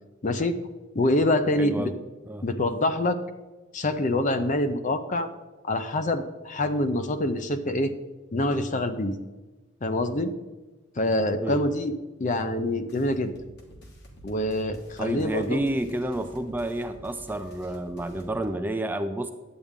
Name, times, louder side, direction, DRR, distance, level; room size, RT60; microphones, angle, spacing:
voice 1, 0.2-0.6 0.9-1.9 2.4-3.2 3.7-5.3 5.6-7.9 8.3-9.2 9.8-10.3 11.0-11.9 12.2-13.3 14.2-15.6, left 1 dB, 40° left, 10 dB, 0.6 m, -25 dB
voice 2, 1.6-2.0 2.3-2.5 11.4-11.6 15.0-19.3, right 1 dB, 10° right, 8 dB, 0.4 m, -30 dB
sound 1, 12.9-18.4, equal, 60° left, 1.7 m, -49 dB
10.5 x 8.3 x 3.7 m, 1.2 s
head